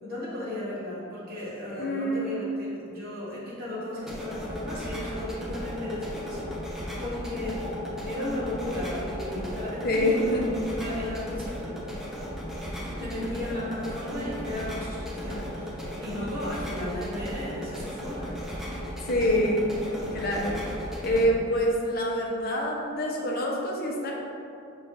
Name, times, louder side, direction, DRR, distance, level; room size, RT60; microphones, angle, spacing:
voice 1, 0.0-10.3 10.7-11.8 12.9-18.4, left 1 dB, 50° right, -9 dB, 1.0 m, -35 dB
voice 2, 1.7-2.2 9.8-10.5 19.0-19.7 20.1-20.6 21.0-24.1, equal, 50° left, -2 dB, 0.7 m, -26 dB
sound 1, 4.0-21.2, equal, ahead, 0.7 m, -36 dB
6.0 x 3.1 x 2.6 m, 2.5 s
head